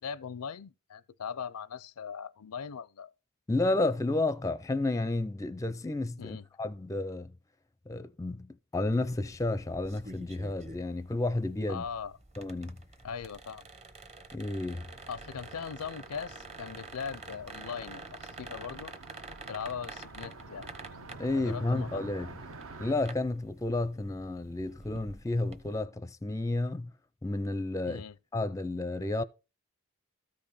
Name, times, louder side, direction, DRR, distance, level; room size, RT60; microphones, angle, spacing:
voice 1, 0.0-3.1 6.2-6.4 11.7-12.2 13.0-13.7 15.1-18.9 19.5-20.7 21.3-22.3 27.9-28.1, left 6 dB, 85° left, 0.5 m, -40 dB
voice 2, 3.5-7.3 7.9-11.8 12.4-12.8 14.3-14.9 21.2-22.3 22.8-26.9 27.2-28.0 28.3-29.2, left 2 dB, 15° left, 0.5 m, -31 dB
sound 1, 8.9-25.8, right 2 dB, 30° right, 1.1 m, -49 dB
Car passing by, 14.8-22.9, right 3 dB, 65° right, 0.9 m, -49 dB
13.5 x 5.2 x 4.2 m
head